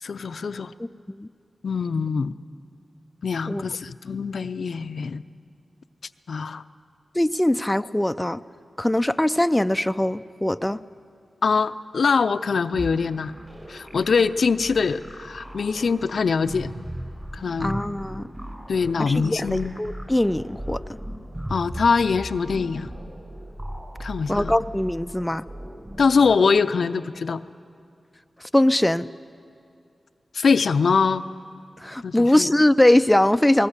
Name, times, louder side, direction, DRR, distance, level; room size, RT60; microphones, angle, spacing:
voice 1, 0.0-0.7 1.6-2.3 3.2-5.2 6.3-6.6 11.4-13.3 13.7-16.7 17.3-17.8 18.7-19.8 21.5-22.9 24.0-24.6 26.0-27.4 30.3-31.3 32.0-32.5, left 5 dB, 80° left, 12 dB, 0.5 m, -23 dB
voice 2, 7.1-8.4 8.8-10.8 17.6-18.3 19.0-20.8 24.3-25.4 28.4-29.1 31.8-33.7, left 1 dB, 10° left, 11 dB, 0.5 m, -21 dB
sound 1, 12.7-26.3, equal, 20° right, 5.1 m, -37 dB
19.5 x 19.0 x 8.2 m, 2.4 s
cardioid pair, 55°, 0 cm